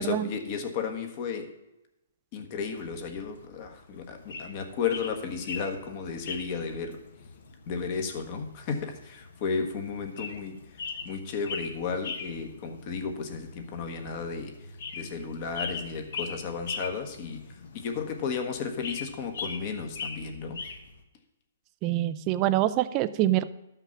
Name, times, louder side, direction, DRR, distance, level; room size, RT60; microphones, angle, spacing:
voice 1, 0.0-1.5 2.3-7.0 7.7-10.8 11.0-14.5 14.9-20.6, left 5 dB, 30° left, 5 dB, 1.4 m, -33 dB
sound 1, 2.6-21.0, left 4 dB, 65° left, 1.4 m, -41 dB
voice 2, 21.8-23.4, right 14 dB, 25° right, 13 dB, 0.5 m, -25 dB
12.5 x 5.9 x 5.8 m, 0.92 s
hypercardioid pair, 160°, 0 cm